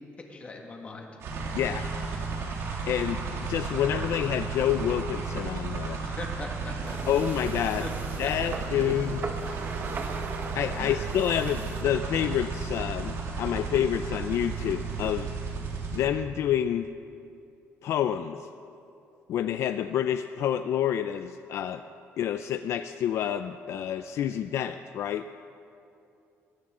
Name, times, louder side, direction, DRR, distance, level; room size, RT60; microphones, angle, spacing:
voice 1, 0.3-1.1 6.0-7.2 7.8-7.9 9.0-9.1 10.8-11.1, left 3 dB, 25° left, 1 dB, 1.9 m, -41 dB
sound 1, 1.2-16.0, right 4 dB, 65° right, 2.5 m, -34 dB
voice 2, 1.5-1.9 2.9-6.0 7.1-7.9 8.2-9.2 10.6-15.3 15.9-16.9 17.8-18.5 19.3-21.8 22.2-25.3, left 10 dB, 60° left, 9 dB, 0.4 m, -28 dB
sound 2, 6.8-11.8, right 4 dB, 40° right, 1.3 m, -39 dB
21.5 x 17.0 x 3.8 m, 2.6 s
cardioid pair, 160°, 5 cm